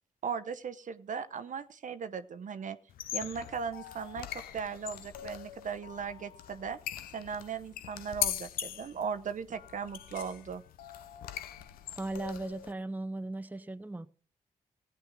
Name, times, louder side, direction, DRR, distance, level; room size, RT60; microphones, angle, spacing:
voice 1, 0.2-2.8 3.1-4.3 4.5-6.8 7.1-10.6, right 6 dB, 60° right, 0.8 m, -38 dB
sound 1, 2.9-12.7, left 11 dB, 80° left, 0.6 m, -41 dB
voice 2, 12.0-14.1, right 2 dB, 10° right, 0.7 m, -37 dB
15.5 x 8.9 x 3.7 m
hypercardioid pair, 40°, 15 cm